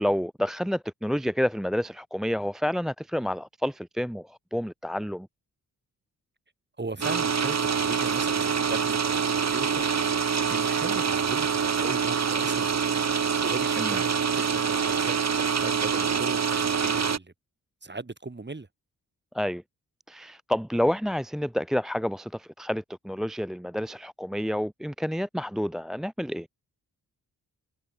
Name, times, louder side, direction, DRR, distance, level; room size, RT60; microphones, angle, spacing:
voice 1, 0.0-5.3 13.8-14.0 19.3-19.6 20.1-26.5, equal, ahead, 0.5 m, -29 dB
voice 2, 6.8-13.1 13.4-17.3 17.8-18.7, right 3 dB, 30° right, 7.1 m, -38 dB
sound 1, 7.0-17.2, right 6 dB, 45° right, 1.8 m, -25 dB
cardioid pair, 55°, 36 cm